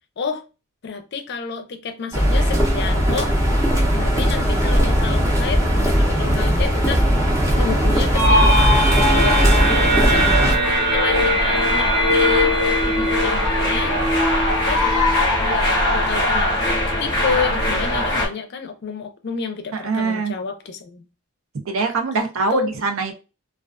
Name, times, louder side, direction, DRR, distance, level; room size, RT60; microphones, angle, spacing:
voice 1, 0.8-3.4 3.9-7.1 7.6-8.8 9.2-10.3 10.9-14.0 14.6-15.1 15.4-16.5 17.0-21.0 22.5-22.7, left 5 dB, 50° left, 0.4 m, -29 dB
sound 1, 2.1-10.5, equal, 15° right, 0.6 m, -18 dB
sound 2, 8.1-15.8, equal, 40° right, 0.8 m, -21 dB
sound 3, 9.2-18.3, left 1 dB, 20° left, 0.8 m, -22 dB
voice 2, 9.7-10.9 19.7-20.3 21.7-23.1, right 4 dB, 70° right, 0.5 m, -25 dB
2.3 x 2.3 x 2.3 m
head